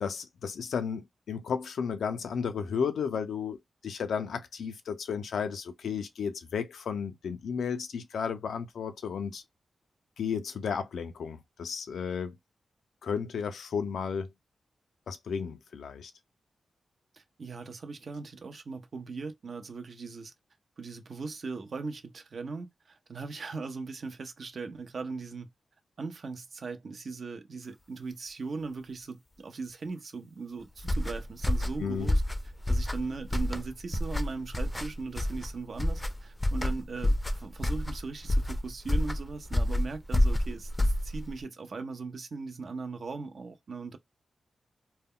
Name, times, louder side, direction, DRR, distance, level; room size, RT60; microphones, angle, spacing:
voice 1, 0.0-3.6 3.8-9.4 10.2-12.3 13.0-14.3 15.1-16.1 31.8-32.1, left 6 dB, 85° left, 0.3 m, -33 dB
voice 2, 17.1-20.3 20.8-25.5 26.0-32.2 32.7-44.0, right 4 dB, 65° right, 0.6 m, -39 dB
sound 1, 30.8-41.4, left 1 dB, 15° left, 0.4 m, -29 dB
2.1 x 2.1 x 3.6 m
cardioid pair, 55°, 0 cm